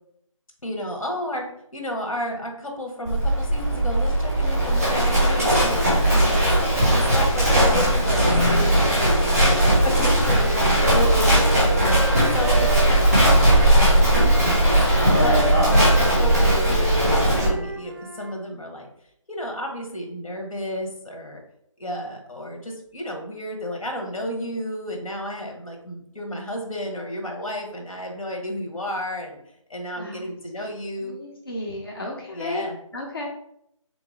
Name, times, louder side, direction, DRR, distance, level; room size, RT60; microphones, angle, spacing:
voice 1, 0.6-1.4 1.7-11.9 12.3-14.7 15.2-18.9 19.3-21.4 21.8-29.4 29.7-31.1 32.3-32.8, equal, 85° left, 2 dB, 1.4 m, -32 dB
Livestock farm animals working animals, 3.1-17.5, right 1 dB, 5° right, 0.9 m, -18 dB
Wind instrument woodwind instrument, 9.7-13.7 14.1-18.3, right 3 dB, 40° right, 0.4 m, -32 dB
voice 2, 10.6-11.5 30.0-30.3 30.6-30.7 31.0-32.7 32.9-33.3, left 2 dB, 45° left, -1 dB, 0.6 m, -34 dB
3.8 x 3.0 x 3.7 m, 0.73 s
figure-of-eight pair, 180°, 17 cm